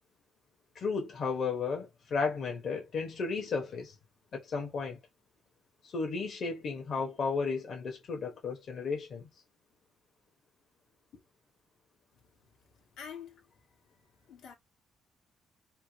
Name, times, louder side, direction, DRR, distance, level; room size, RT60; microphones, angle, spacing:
voice 1, 0.7-3.9 4.3-5.0 5.8-9.3, left 4 dB, 60° left, 1.0 m, -34 dB
voice 2, 13.0-13.4 13.9-14.5, left 7 dB, 90° left, 1.2 m, -47 dB
3.5 x 2.2 x 3.1 m
cardioid pair, 90°, 0 cm